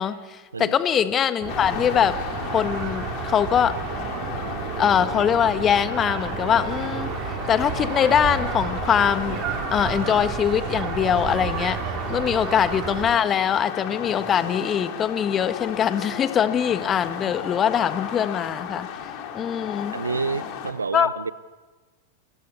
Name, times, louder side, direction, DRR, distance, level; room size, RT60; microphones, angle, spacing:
voice 1, 0.0-2.2 2.5-3.8 4.8-7.1 7.5-9.4 9.7-11.8 12.1-18.9 19.3-19.9 20.9-21.1, left 8 dB, 25° left, 12 dB, 1.4 m, -22 dB
sound 1, 1.4-13.1, right 8 dB, 40° right, 3.1 m, -31 dB
sound 2, 1.5-20.7, left 8 dB, 45° left, 3.6 m, -35 dB
voice 2, 19.9-21.3, right 4 dB, 80° right, 19 dB, 0.8 m, -29 dB
28.0 x 21.0 x 8.4 m, 1.3 s
figure-of-eight pair, 95°, 0 cm